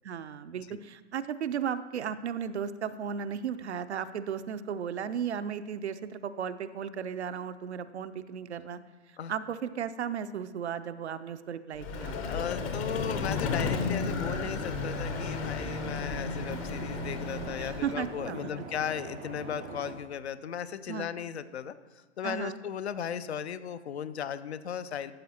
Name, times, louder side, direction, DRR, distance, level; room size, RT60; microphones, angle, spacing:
voice 1, 0.0-8.8 9.1-12.7 17.6-18.5 20.9-21.1 22.2-22.6, right 8 dB, 65° right, 12 dB, 0.5 m, -35 dB
Vehicle, 11.8-18.2, left 4 dB, 30° left, 0.7 m, -33 dB
voice 2, 12.2-25.1, left 8 dB, 65° left, 13 dB, 0.5 m, -36 dB
sound 1, 13.2-19.9, right 3 dB, 10° right, 0.3 m, -42 dB
12.5 x 7.3 x 2.8 m, 1.4 s
figure-of-eight pair, 110°, 36 cm